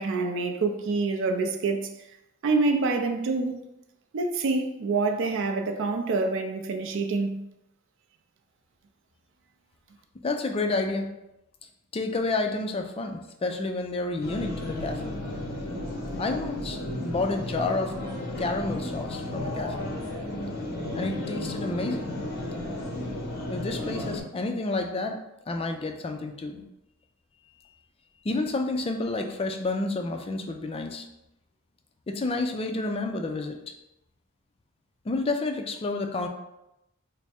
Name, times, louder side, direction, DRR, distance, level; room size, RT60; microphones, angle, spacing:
voice 1, 0.0-1.9 2.4-3.5 4.1-7.4, right 3 dB, 65° right, 0.4 m, -26 dB
voice 2, 10.2-11.1 11.9-15.1 16.2-17.9 18.4-19.9 20.9-22.1 23.5-25.2 25.5-26.6 28.2-31.0 32.1-33.6 35.1-36.3, left 3 dB, 25° left, 0.4 m, -30 dB
sound 1, 14.2-24.2, left 1 dB, 50° left, 0.7 m, -33 dB
3.4 x 2.0 x 4.2 m
head